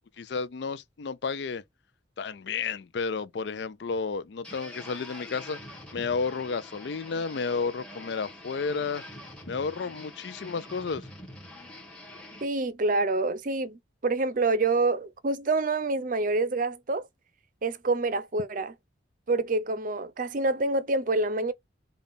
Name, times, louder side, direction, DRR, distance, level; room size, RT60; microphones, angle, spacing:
voice 1, 0.2-1.6 2.2-5.6 5.9-9.0 9.5-11.1, left 5 dB, 60° left, 0.4 m, -32 dB
sound 1, 4.4-12.5, left 1 dB, 5° left, 1.1 m, -45 dB
voice 2, 12.4-17.1 17.6-18.7 19.3-21.5, right 3 dB, 45° right, 0.6 m, -27 dB
5.3 x 2.3 x 3.9 m
head